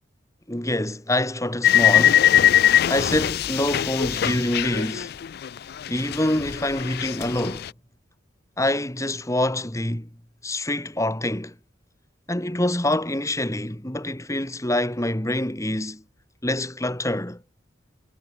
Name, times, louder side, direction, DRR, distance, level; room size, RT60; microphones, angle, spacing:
voice 1, 0.5-2.5 2.9-5.1 5.9-7.7 8.6-10.1 10.4-11.5 12.3-16.0 16.4-17.4, left 1 dB, 15° left, 2.2 m, -26 dB
sound 1, 1.6-5.6 5.8-7.7, left 11 dB, 50° left, 0.4 m, -21 dB
head